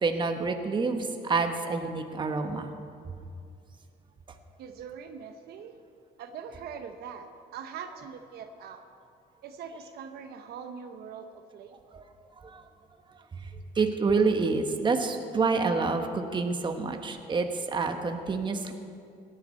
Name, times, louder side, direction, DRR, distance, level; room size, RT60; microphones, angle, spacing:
voice 1, 0.0-2.7 11.9-12.0 12.4-12.6 13.4-13.5 13.7-18.7, right 4 dB, 30° right, 5 dB, 1.1 m, -28 dB
voice 2, 4.6-5.8 6.2-8.8 9.4-11.9, right 6 dB, 70° right, 7 dB, 0.9 m, -42 dB
17.5 x 10.5 x 4.4 m, 2.4 s
cardioid pair, 110°, 17 cm